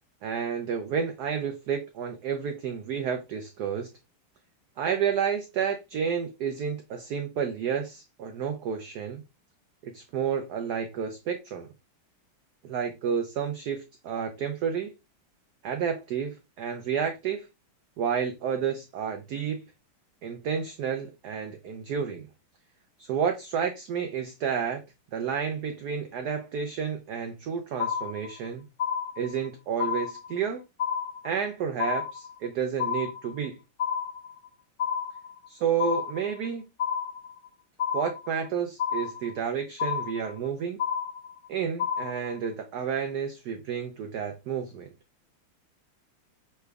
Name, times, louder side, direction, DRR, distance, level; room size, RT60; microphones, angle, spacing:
voice 1, 0.2-3.9 4.8-9.2 9.8-11.7 12.6-14.9 15.6-17.5 18.0-19.6 20.2-22.3 23.0-24.8 25.1-28.6 29.2-30.6 31.2-33.6 35.5-36.7 37.9-40.8 41.5-44.9, right 7 dB, 90° right, 0.8 m, -30 dB
sound 1, 27.8-28.5 28.8-29.5 29.8-30.5 30.8-31.5 31.8-32.5 32.8-33.5 33.8-34.5 34.8-35.5 35.8-36.5 36.8-37.5 37.8-38.5 38.8-39.5 39.8-40.5 40.8-41.5 41.8-42.5, left 7 dB, 65° left, 1.0 m, -30 dB
5.7 x 3.2 x 2.3 m
omnidirectional pair, 2.3 m